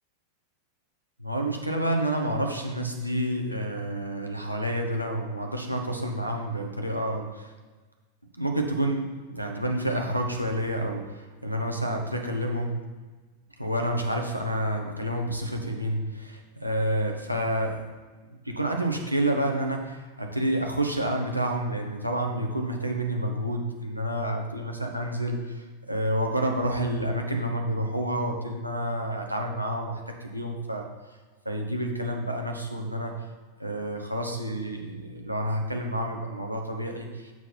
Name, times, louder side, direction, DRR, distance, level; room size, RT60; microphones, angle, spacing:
voice 1, 1.2-7.5 8.4-12.7 13.6-17.8 18.3-30.9 31.4-33.1 33.6-37.3, right 1 dB, 90° right, 2 dB, 1.0 m, -29 dB
7.2 x 6.0 x 4.3 m, 1.3 s
figure-of-eight pair, 90°, 0 cm